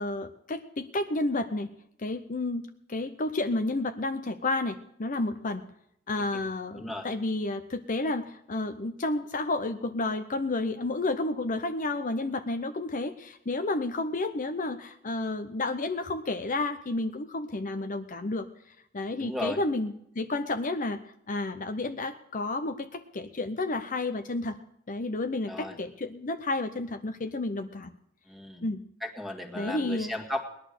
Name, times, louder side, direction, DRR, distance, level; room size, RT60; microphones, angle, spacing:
voice 1, 0.0-1.7 2.0-2.6 2.9-5.6 6.1-18.5 18.9-21.0 21.3-24.6 24.9-27.9 28.6-28.8 29.6-30.1, left 2 dB, 40° left, 8 dB, 0.7 m, -31 dB
voice 2, 6.7-7.1 19.2-19.6 25.5-25.8 28.3-28.6 29.0-30.5, left 1 dB, ahead, 5 dB, 1.9 m, -35 dB
19.0 x 11.0 x 6.6 m, 0.75 s
head